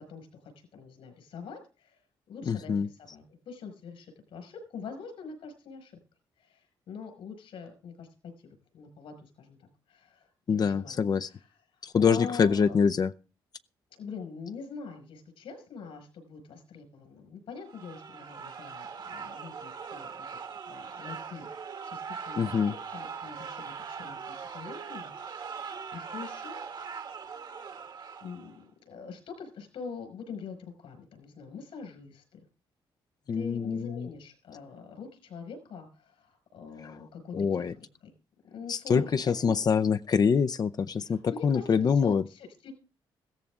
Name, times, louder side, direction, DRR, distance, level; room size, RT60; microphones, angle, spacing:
voice 1, 0.0-2.0 2.3-5.9 6.4-8.1 8.4-12.8 13.9-20.4 20.7-21.5 21.8-27.0 28.2-32.4 33.3-38.1 38.5-39.1 39.4-39.5 41.0-42.7, left 5 dB, 80° left, 5.6 m, -44 dB
voice 2, 2.5-2.9 10.5-11.3 11.8-13.1 22.4-22.8 33.3-34.1 37.3-37.7 38.7-42.2, left 6 dB, 45° left, 0.6 m, -25 dB
sound 1, 17.7-28.6, right 6 dB, 55° right, 1.5 m, -41 dB
15.5 x 14.0 x 3.7 m
cardioid pair, 85°, 9 cm